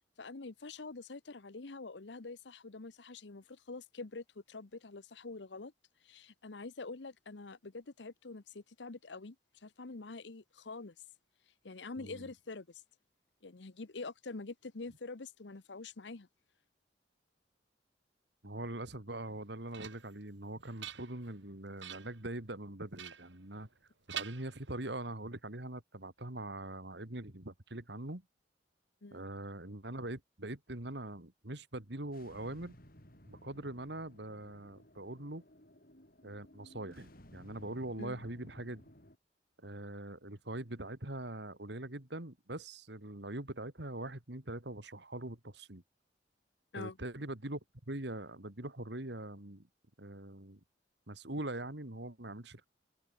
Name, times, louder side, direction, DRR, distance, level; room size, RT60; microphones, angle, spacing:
voice 1, 0.2-5.7 6.0-9.4 9.6-10.9 11.6-12.8 13.4-16.3 29.0-29.2 38.0-38.2 46.7-47.0, left 3 dB, 75° left, 1.0 m, -46 dB
voice 2, 12.0-12.3 18.4-23.7 24.1-28.2 29.1-32.8 33.2-35.4 36.2-38.8 39.6-45.8 46.7-47.6 47.9-49.7 50.0-50.6 51.1-52.7, right 1 dB, 65° right, 2.7 m, -42 dB
sound 1, 19.2-20.2 20.6-21.4 21.8-22.2 23.0-23.8 24.1-25.0, right 9 dB, 85° right, 7.0 m, -46 dB
sound 2, 32.1-39.2, equal, 55° left, 6.9 m, -58 dB
head